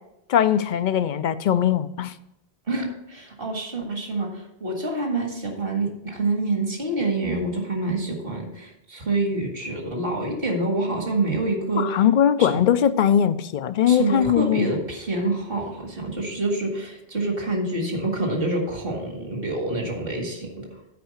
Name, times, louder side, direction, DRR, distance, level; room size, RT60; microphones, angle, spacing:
voice 1, 0.3-2.1 11.8-14.7, left 9 dB, 60° left, 0.6 m, -20 dB
voice 2, 2.7-12.1 12.4-12.6 13.9-20.8, right 2 dB, 65° right, 2.0 m, -27 dB
9.3 x 4.6 x 6.5 m
omnidirectional pair, 1.0 m